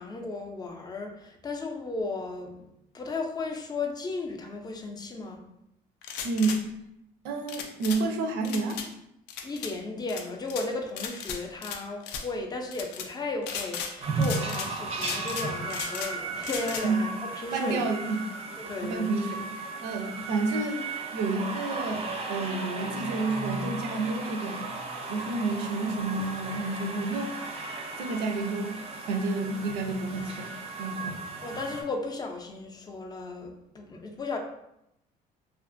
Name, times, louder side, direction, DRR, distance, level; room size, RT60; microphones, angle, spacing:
voice 1, 0.0-2.7 2.9-5.5 9.4-17.1 17.4-17.8 18.6-19.1 31.4-34.4, left 3 dB, 25° left, 2 dB, 0.4 m, -35 dB
sound 1, 6.0-6.6 7.5-8.0 8.4-8.9 9.3-9.7 10.1-10.7 11.0-11.8 12.0-12.3 12.7-13.1 13.4-13.9 14.2-14.7 15.0-16.1 16.4-16.9, left 7 dB, 85° left, 0.4 m, -36 dB
voice 2, 6.2-6.6 7.2-8.8 16.8-17.0 17.5-18.2 18.8-20.8 21.1-24.7 25.1-27.3 28.0-28.8 29.1-30.5 30.8-31.2, right 3 dB, 90° right, 3 dB, 0.5 m, -30 dB
sound 2, 14.0-31.8, right 3 dB, 35° right, 0.4 m, -35 dB
2.4 x 2.4 x 2.5 m, 0.81 s
cardioid pair, 110°, 17 cm